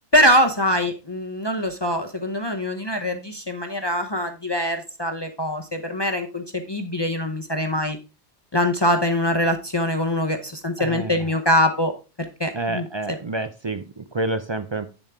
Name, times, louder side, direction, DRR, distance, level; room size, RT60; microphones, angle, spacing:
voice 1, 0.1-8.0 8.5-11.9 12.4-12.9, equal, 25° left, 5 dB, 0.7 m, -23 dB
voice 2, 10.8-11.3 12.5-14.9, right 2 dB, 50° right, 10 dB, 0.3 m, -28 dB
8.1 x 7.0 x 3.5 m, 0.30 s
omnidirectional pair, 1.2 m